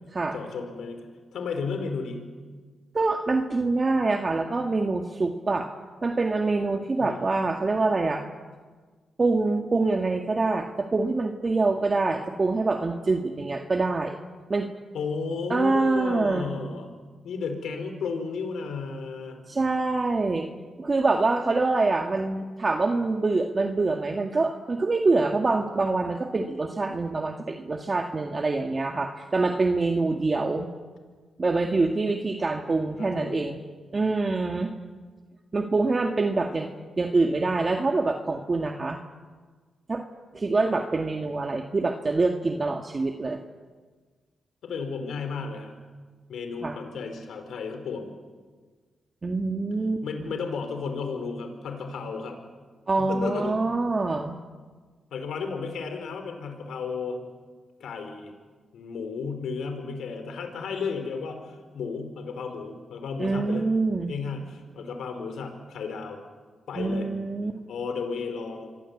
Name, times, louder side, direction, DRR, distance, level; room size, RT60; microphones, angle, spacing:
voice 1, 0.3-1.0 1.3-2.4 7.0-7.3 14.9-16.9 17.2-19.4 33.0-33.4 44.6-45.7 46.3-48.1 50.0-52.4 53.0-53.6 55.1-57.2 57.8-58.3 58.7-63.6 64.1-66.2 66.7-67.1 67.7-68.7, left 5 dB, 85° left, 6 dB, 4.6 m, -33 dB
voice 2, 2.9-5.7 6.0-8.2 9.2-14.2 14.5-14.7 15.5-16.5 19.5-20.5 20.8-30.7 31.4-33.6 33.9-34.7 35.5-36.7 37.0-39.0 39.9-40.0 40.3-43.4 46.6-46.7 49.2-50.3 52.9-54.4 63.2-64.1 66.8-67.6, right 3 dB, 35° right, 3 dB, 1.9 m, -25 dB
28.0 x 23.5 x 8.5 m, 1.5 s
cardioid pair, 70°, 0 cm